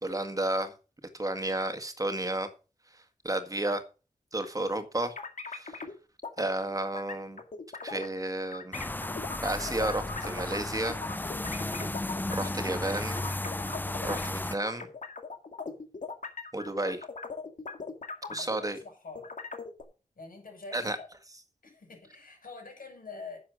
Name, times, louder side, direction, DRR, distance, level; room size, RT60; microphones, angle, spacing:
voice 1, 0.0-0.7 1.1-2.5 2.9-3.8 4.3-5.2 5.5-5.8 6.4-7.4 7.8-8.7 9.4-11.0 12.3-13.2 14.0-14.9 16.5-17.0 18.3-18.8 20.7-21.0, right 1 dB, 25° right, 1.8 m, -32 dB
sound 1, 5.2-5.9 6.2-6.4 6.9-8.2 8.5-14.3 14.7-18.9 19.2-19.8, left 4 dB, 65° left, 2.1 m, -40 dB
sound 2, 8.7-14.6, left 2 dB, 15° left, 0.4 m, -34 dB
voice 2, 18.3-19.3 20.2-21.1 21.6-23.4, left 3 dB, 80° left, 6.5 m, -46 dB
10.5 x 7.2 x 6.2 m
wide cardioid pair, 110°, 14 cm